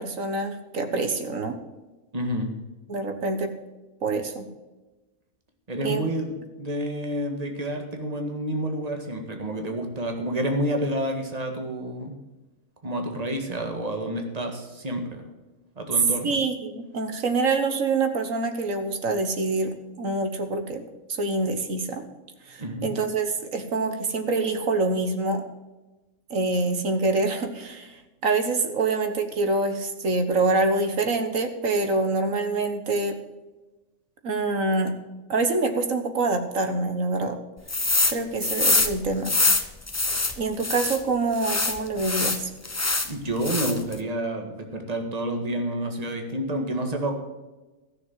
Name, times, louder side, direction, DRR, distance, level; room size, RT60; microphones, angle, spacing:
voice 1, 0.0-1.6 2.9-3.5 4.0-4.5 5.8-6.0 16.2-20.8 21.1-22.0 22.5-25.4 26.3-33.2 34.2-34.9 35.3-37.4 38.1-39.4 40.4-42.5, right 3 dB, 80° right, 7 dB, 1.8 m, -26 dB
voice 2, 2.1-2.5 5.7-6.3 6.6-12.2 12.8-15.2 15.8-16.4 22.6-22.9 43.0-47.2, right 1 dB, 30° right, 4 dB, 1.8 m, -29 dB
sound 1, 37.7-38.2 38.4-41.0 41.4-43.1 43.4-43.9, left 2 dB, 15° left, 0.6 m, -24 dB
14.0 x 6.7 x 7.6 m, 1.1 s
omnidirectional pair, 1.4 m